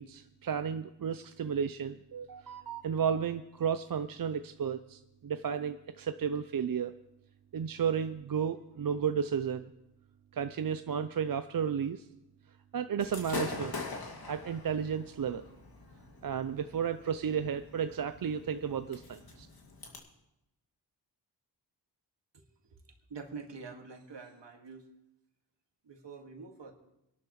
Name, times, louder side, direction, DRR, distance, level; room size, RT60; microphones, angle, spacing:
voice 1, 0.0-6.9 7.5-9.7 10.3-12.1 12.7-13.7 14.3-15.4 16.2-19.5, right 7 dB, 50° right, 9 dB, 0.6 m, -33 dB
Gunshot gunfire / Fireworks, 13.0-20.0, left 3 dB, 55° left, 2.4 m, -43 dB
voice 2, 23.1-24.9 25.8-26.7, right 5 dB, 70° right, 3 dB, 2.1 m, -46 dB
23.5 x 12.0 x 3.2 m, 0.89 s
cardioid pair, 65°, 44 cm